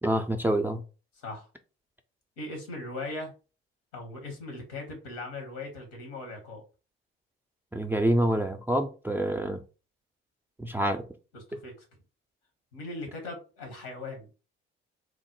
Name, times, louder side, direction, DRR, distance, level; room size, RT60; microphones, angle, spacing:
voice 1, 0.0-0.8 7.7-9.6 10.6-11.0 11.5-11.6, right 1 dB, 5° right, 0.3 m, -27 dB
voice 2, 2.4-3.3 3.9-6.6 11.3-11.7 12.7-14.3, left 2 dB, 80° left, 1.1 m, -39 dB
3.2 x 2.1 x 3.0 m
hypercardioid pair, 55°, 30 cm